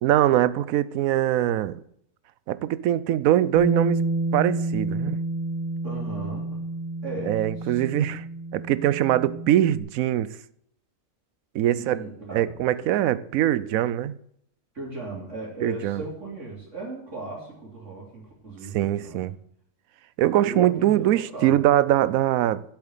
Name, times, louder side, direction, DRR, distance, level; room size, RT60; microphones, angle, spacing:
voice 1, 0.0-1.8 2.5-4.0 4.3-5.2 7.2-8.2 8.5-10.3 11.5-12.0 12.3-14.1 15.6-16.0 18.7-19.3 20.2-22.6, right 12 dB, 85° right, 1.0 m, -22 dB
Bass guitar, 3.5-9.8, right 2 dB, 15° right, 1.5 m, -29 dB
voice 2, 5.8-6.7 7.0-7.8 11.7-12.5 12.8-12.9 14.7-19.2 20.4-21.5, right 2 dB, 60° right, 3.5 m, -37 dB
7.9 x 7.1 x 8.1 m
omnidirectional pair, 1.4 m